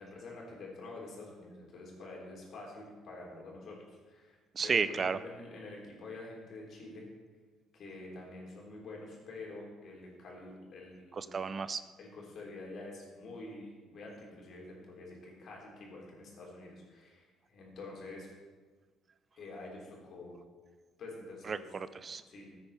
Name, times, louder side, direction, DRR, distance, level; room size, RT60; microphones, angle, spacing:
voice 1, 0.0-3.8 4.1-4.4 4.6-7.0 7.7-11.4 12.0-18.3 19.3-20.4 21.0-21.7 22.3-22.5, left 2 dB, 60° left, -2 dB, 3.9 m, -47 dB
voice 2, 4.6-5.2 11.2-11.8 21.5-22.2, right 5 dB, 40° right, 14 dB, 0.5 m, -32 dB
14.5 x 9.0 x 4.4 m, 1.4 s
supercardioid pair, 75°, 0 cm